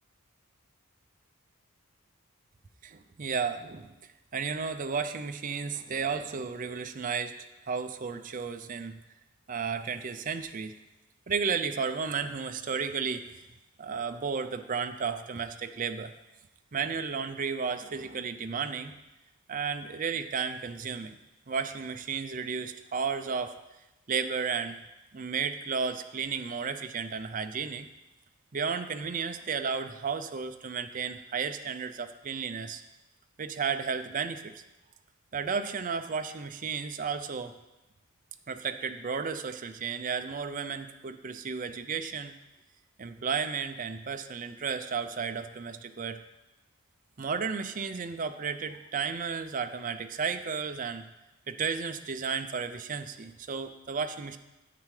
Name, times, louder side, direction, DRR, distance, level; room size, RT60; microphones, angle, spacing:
voice 1, 2.8-3.9 4.3-9.0 9.5-10.7 11.3-13.3 13.8-16.1 16.7-18.9 19.5-21.2 21.5-23.5 24.1-24.8 25.1-27.9 28.5-32.8 33.4-34.5 35.3-37.5 38.5-42.3 43.0-46.2 47.2-51.0 51.5-54.4, right 5 dB, 35° right, 8 dB, 0.5 m, -33 dB
9.6 x 8.5 x 3.2 m, 0.99 s
head